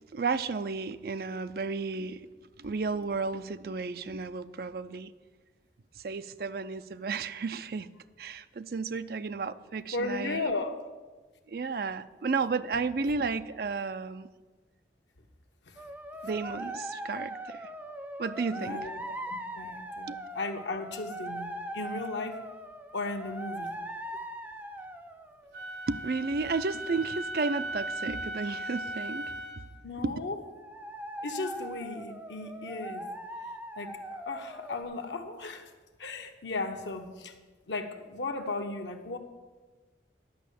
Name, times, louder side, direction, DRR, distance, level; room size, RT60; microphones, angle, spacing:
voice 1, 0.1-2.2 2.6-5.1 6.0-7.9 8.2-10.4 11.5-14.3 16.2-17.6 18.2-19.1 20.1-20.2 25.9-29.6 30.0-30.1, right 4 dB, 55° right, 0.4 m, -33 dB
voice 2, 9.9-10.9 15.7-15.8 18.6-19.0 19.6-22.4 22.9-23.7 29.8-30.4 31.2-33.1 33.8-35.7 36.0-37.3 37.7-39.2, left 3 dB, 85° left, 1.1 m, -36 dB
sound 1, 15.8-25.6 30.5-34.8, right 1 dB, 10° right, 0.6 m, -40 dB
Wind instrument woodwind instrument, 25.5-29.7, right 1 dB, 75° right, 1.4 m, -37 dB
11.0 x 5.5 x 8.4 m
head